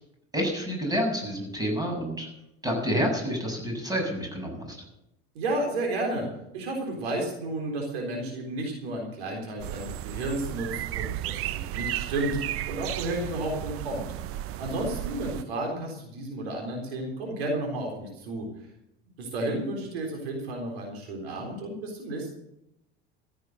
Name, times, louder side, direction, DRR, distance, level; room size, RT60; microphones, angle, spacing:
voice 1, 0.3-2.3 2.6-4.8, equal, 10° right, 1 dB, 6.9 m, -28 dB
voice 2, 5.3-6.3 6.5-18.5 19.2-22.3, right 1 dB, 75° right, 1 dB, 3.9 m, -32 dB
sound 1, 9.6-15.4, right 13 dB, 45° right, 0.7 m, -34 dB
15.0 x 8.9 x 7.9 m, 0.81 s
hypercardioid pair, 75°, 31 cm